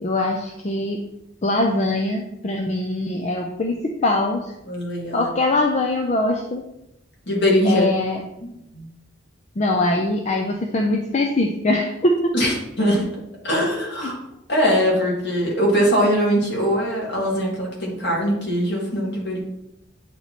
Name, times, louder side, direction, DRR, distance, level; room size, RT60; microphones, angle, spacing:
voice 1, 0.0-1.0 1.4-4.5 5.1-6.6 7.6-8.2 9.6-12.3 14.0-14.1, left 2 dB, 35° left, 2 dB, 0.4 m, -22 dB
voice 2, 4.7-5.3 7.3-7.8 8.4-8.9 12.3-13.1 13.4-14.2 14.5-19.4, equal, 55° left, -3 dB, 1.8 m, -21 dB
8.2 x 3.0 x 4.1 m, 0.87 s
head